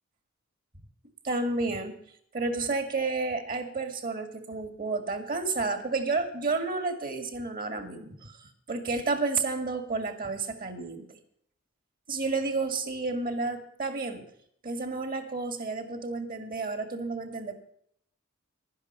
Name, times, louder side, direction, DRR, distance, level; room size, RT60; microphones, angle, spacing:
voice 1, 1.2-2.0 2.3-11.2 12.1-14.2 14.6-17.6, right 3 dB, 45° right, 9 dB, 1.9 m, -31 dB
11.5 x 10.5 x 6.8 m, 0.68 s
head